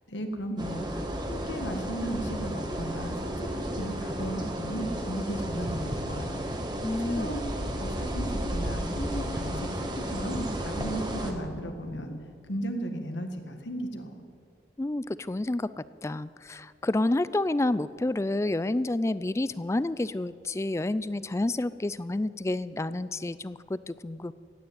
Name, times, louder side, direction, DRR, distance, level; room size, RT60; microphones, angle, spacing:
voice 1, 0.1-6.4 6.8-7.4 7.8-12.1 12.5-14.1, right 1 dB, 85° left, 5 dB, 1.7 m, -35 dB
sound 1, 0.6-11.3, equal, 25° right, 1.5 m, -33 dB
voice 2, 6.8-7.4 14.8-24.3, left 2 dB, 15° left, 16 dB, 0.3 m, -29 dB
15.5 x 9.6 x 9.4 m, 2.4 s
head